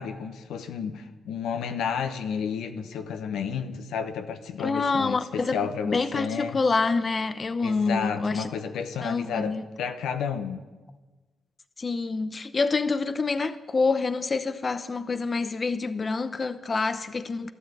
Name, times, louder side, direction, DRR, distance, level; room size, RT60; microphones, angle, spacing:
voice 1, 0.0-6.6 7.6-10.6, left 7 dB, 85° left, 1.1 m, -31 dB
voice 2, 4.6-5.6 5.8-8.5 9.0-9.6 11.8-17.5, left 4 dB, 40° left, 0.8 m, -27 dB
13.0 x 12.5 x 8.4 m
cardioid pair, 65°, 0 cm